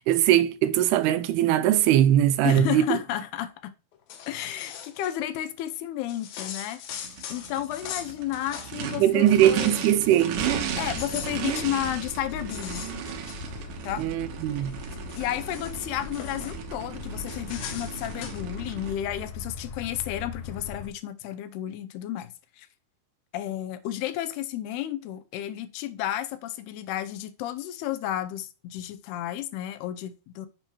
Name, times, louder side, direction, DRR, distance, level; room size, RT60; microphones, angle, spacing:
voice 1, 0.0-3.0 9.0-10.4 14.0-14.8, right 12 dB, 90° right, 2.6 m, -21 dB
voice 2, 2.4-3.7 4.3-6.8 7.3-10.0 10.8-12.9 13.8-14.0 15.2-22.7 23.3-30.5, left 12 dB, 90° left, 2.8 m, -32 dB
sound 1, 3.9-5.1 6.1-8.9 9.2-9.4 9.7-10.3 10.7-14.0 14.5-16.6 17.3-18.4, left 9 dB, 75° left, 2.7 m, -41 dB
Race car auto racing / Idling / Accelerating revving vroom, 6.9-18.9, right 8 dB, 65° right, 2.4 m, -35 dB
sound 2, 10.3-20.9, left 4 dB, 55° left, 2.9 m, -40 dB
9.9 x 7.4 x 3.0 m
omnidirectional pair, 4.5 m